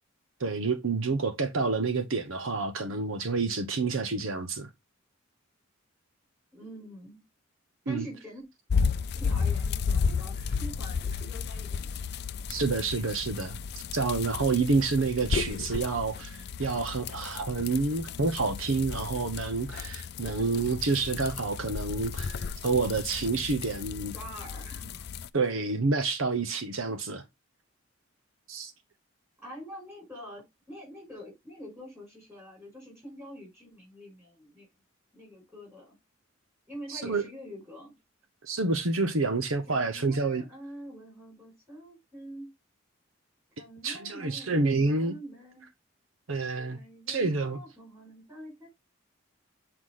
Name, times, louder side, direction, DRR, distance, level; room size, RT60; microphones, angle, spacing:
voice 1, 0.4-4.7 7.9-8.1 12.5-13.6 13.9-24.1 25.3-27.2 28.5-28.7 36.9-37.2 38.4-40.4 43.8-45.1 46.3-46.8 47.1-47.6, right 3 dB, 75° right, 0.9 m, -28 dB
voice 2, 6.5-7.2 7.9-8.4 9.1-12.1 24.1-25.1 29.4-34.7 35.1-36.0 36.7-37.9 39.7-42.5 43.6-45.6 46.7-48.7, equal, 15° right, 5.4 m, -45 dB
sound 1, 8.7-25.3, left 5 dB, 50° left, 0.4 m, -33 dB
7.9 x 4.8 x 3.7 m
head